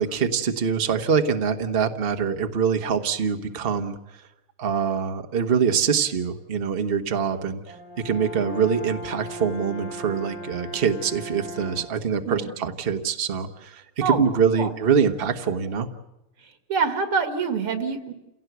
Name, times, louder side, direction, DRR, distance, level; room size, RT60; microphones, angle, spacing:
voice 1, 0.0-4.0 4.6-7.7 8.0-15.9, right 6 dB, 35° right, 6 dB, 1.2 m, -24 dB
Brass instrument, 7.7-12.1, equal, 30° left, 2.0 m, -38 dB
voice 2, 16.4-18.1, right 5 dB, 90° right, 7 dB, 2.7 m, -26 dB
28.0 x 17.0 x 8.1 m, 0.94 s
omnidirectional pair, 2.3 m